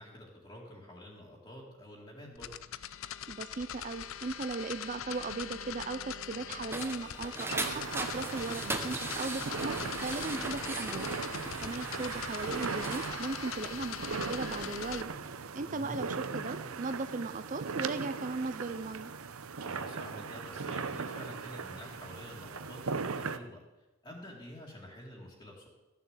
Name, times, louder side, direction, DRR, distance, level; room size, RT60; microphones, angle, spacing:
voice 1, 0.0-2.5 11.6-12.0 15.7-16.1 19.6-23.6 24.0-25.7, equal, 20° left, -3 dB, 2.1 m, -48 dB
sound 1, 2.4-15.0, left 10 dB, 70° left, 0.5 m, -42 dB
voice 2, 3.3-11.2 11.6-15.1 15.5-19.1, right 3 dB, 35° right, 11 dB, 0.5 m, -37 dB
sound 2, 6.3-13.1, right 2 dB, 10° right, 0.9 m, -39 dB
sound 3, 7.5-23.4, right 5 dB, 80° right, 0.7 m, -39 dB
14.0 x 7.1 x 8.0 m, 1.1 s
head